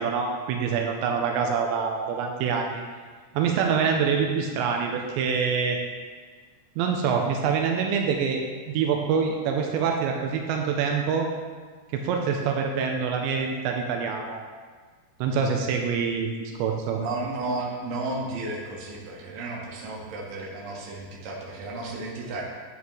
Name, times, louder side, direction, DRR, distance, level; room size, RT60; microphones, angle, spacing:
voice 1, 0.0-2.8 3.3-5.8 6.8-8.4 8.7-11.3 11.9-14.4 15.2-17.0, right 6 dB, 85° right, 2 dB, 2.9 m, -25 dB
voice 2, 16.9-22.4, right 2 dB, 60° right, -3 dB, 2.8 m, -33 dB
11.5 x 8.3 x 3.2 m, 1.5 s
omnidirectional pair, 5.2 m